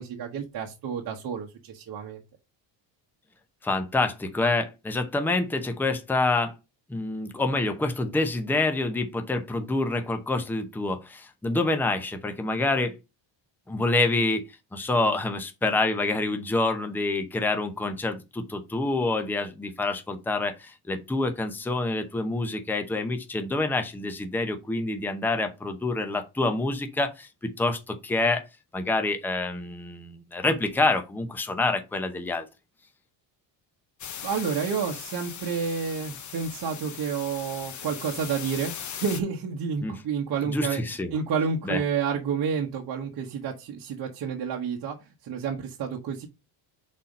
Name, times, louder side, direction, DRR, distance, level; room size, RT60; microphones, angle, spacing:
voice 1, 0.0-2.2 34.2-38.7 39.0-40.8 41.1-46.3, right 6 dB, 45° right, 1.2 m, -30 dB
voice 2, 3.6-6.5 6.9-12.9 13.7-14.4 14.7-28.4 28.7-32.5 39.8-40.0 40.5-41.2 41.7-41.8, left 2 dB, 5° left, 0.7 m, -27 dB
sound 1, 34.0-39.2, left 8 dB, 40° left, 1.0 m, -39 dB
5.6 x 4.3 x 5.1 m
cardioid pair, 160°, 47 cm